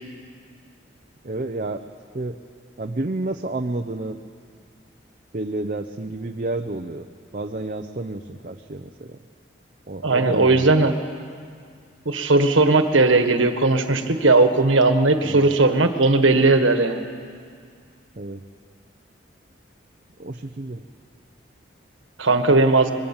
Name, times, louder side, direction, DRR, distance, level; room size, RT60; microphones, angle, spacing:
voice 1, 1.2-1.8 2.1-2.4 2.8-4.2 5.3-7.1 7.3-9.2 9.9-10.9 15.2-15.6 18.2-18.4 20.2-20.8, right 2 dB, 45° right, 4 dB, 0.7 m, -30 dB
voice 2, 10.0-10.9 12.0-17.0 22.2-22.9, right 3 dB, 85° right, 7 dB, 1.6 m, -17 dB
24.5 x 22.0 x 7.3 m, 2.1 s
head